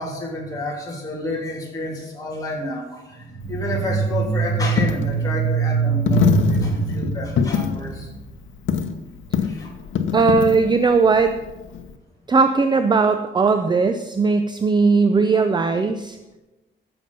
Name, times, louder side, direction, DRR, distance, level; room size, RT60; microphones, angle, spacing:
voice 1, 0.0-8.1 9.4-9.8, left 1 dB, 15° left, -3 dB, 2.9 m, -30 dB
sound 1, 3.3-8.2, right 5 dB, 75° right, 4.2 m, -23 dB
Coin (dropping), 3.4-12.0, left 7 dB, 75° left, 0.9 m, -25 dB
voice 2, 10.1-11.4 12.3-16.2, right 4 dB, 20° right, 8 dB, 0.5 m, -18 dB
14.5 x 7.0 x 5.4 m, 1.1 s
wide cardioid pair, 170°, 20 cm